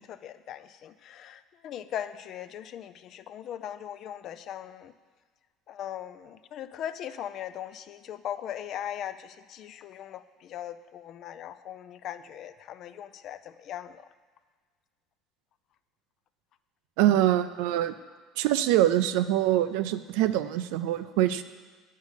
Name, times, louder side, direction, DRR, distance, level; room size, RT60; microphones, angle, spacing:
voice 1, 0.0-4.9 5.7-14.1, left 10 dB, 50° left, 13 dB, 0.5 m, -39 dB
voice 2, 17.0-17.9 18.4-21.4, right 13 dB, 85° right, 12 dB, 0.5 m, -24 dB
8.4 x 6.5 x 8.2 m, 1.4 s
cardioid pair, 140°, 0 cm